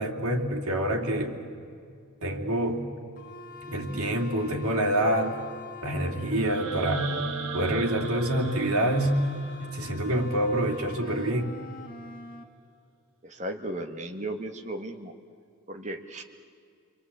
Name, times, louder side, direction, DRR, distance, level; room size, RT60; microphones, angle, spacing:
voice 1, 0.0-1.4 2.2-2.9 3.6-5.4 5.8-7.1 7.5-9.2 9.6-11.5, right 1 dB, 80° right, 1 dB, 2.7 m, -27 dB
sound 1, 3.2-12.4, left 3 dB, 40° left, 1.6 m, -44 dB
sound 2, 6.4-10.4, right 4 dB, 60° right, 1.4 m, -37 dB
voice 2, 13.2-15.1 15.7-16.2, right 1 dB, 30° right, 4 dB, 1.6 m, -35 dB
29.0 x 23.0 x 8.5 m, 2.3 s
head